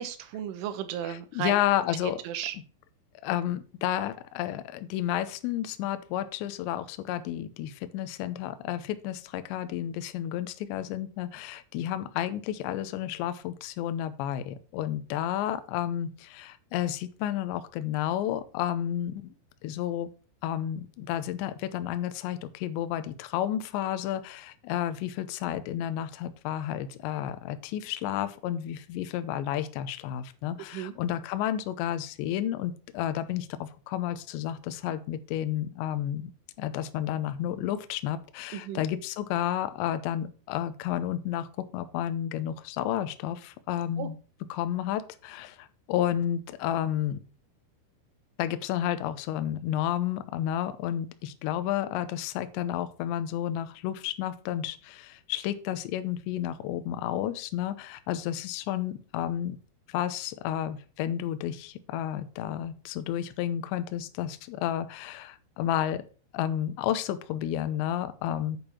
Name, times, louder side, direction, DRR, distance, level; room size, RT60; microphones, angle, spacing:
voice 1, 0.0-1.6 2.3-2.5 30.7-30.9 38.5-38.8 44.0-44.1, right 10 dB, 80° right, 9 dB, 3.5 m, -34 dB
voice 2, 1.0-2.2 3.2-19.3 19.6-20.1 20.4-36.3 36.6-44.2 44.5-47.2 48.4-59.6 59.9-66.0 66.3-68.6, left 11 dB, 80° left, 11 dB, 2.8 m, -31 dB
8.8 x 5.3 x 5.9 m, 0.37 s
omnidirectional pair, 5.7 m